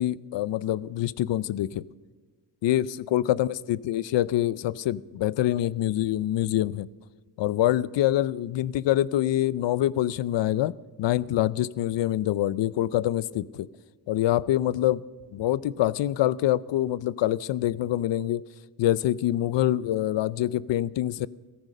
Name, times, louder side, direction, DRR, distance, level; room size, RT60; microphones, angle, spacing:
voice 1, 0.0-1.8 2.6-6.9 7.4-10.7 11.0-13.7 14.1-15.0 15.3-18.4 18.8-21.3, left 13 dB, 85° left, 20 dB, 0.6 m, -25 dB
15.0 x 13.5 x 6.5 m, 1.4 s
cardioid pair, 90°, 42 cm